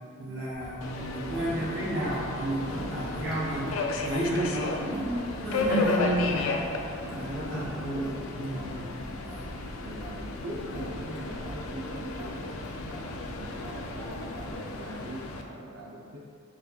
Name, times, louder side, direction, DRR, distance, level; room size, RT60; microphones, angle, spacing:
voice 1, 0.2-3.7 4.0-6.5 7.1-8.7, right 1 dB, 50° right, -11 dB, 0.9 m, -31 dB
Traffic noise roadway noise / Drip / Trickle dribble, 0.5-14.5, equal, 20° right, 0.9 m, -45 dB
Subway metro underground, 0.8-15.4, left 3 dB, 85° left, 0.4 m, -34 dB
voice 2, 9.8-16.3, right 1 dB, 70° right, -2 dB, 0.4 m, -42 dB
6.3 x 2.7 x 2.3 m, 2.4 s
head